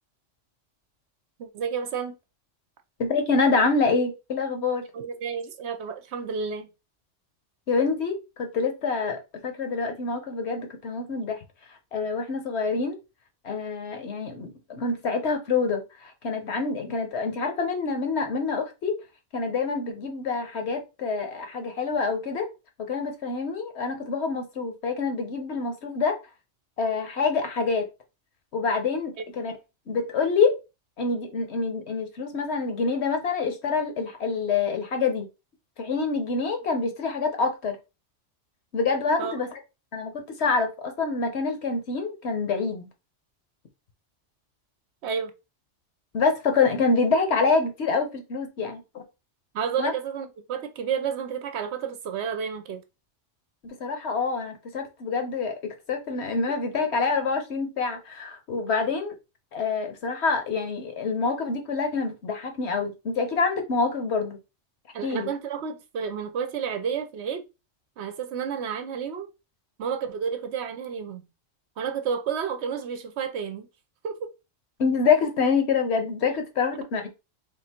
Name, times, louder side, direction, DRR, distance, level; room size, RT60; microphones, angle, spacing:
voice 1, 1.4-2.1 4.9-6.7 39.2-39.3 45.0-45.3 48.6-48.7 49.5-52.8 64.9-67.4 68.0-69.3 69.8-71.3 71.8-73.7 74.0-74.3, right 7 dB, 70° right, 0.9 m, -31 dB
voice 2, 3.0-4.8 7.7-11.4 11.9-13.0 13.4-19.0 19.3-22.5 22.9-26.2 26.8-27.9 28.5-29.5 29.9-30.6 31.0-35.3 35.8-37.8 38.7-39.6 39.9-40.1 40.4-42.9 46.1-49.0 49.8-49.9 53.6-59.1 59.5-64.4 65.0-65.3 74.8-77.1, left 4 dB, 65° left, 1.1 m, -26 dB
3.6 x 2.5 x 4.2 m
omnidirectional pair, 1.2 m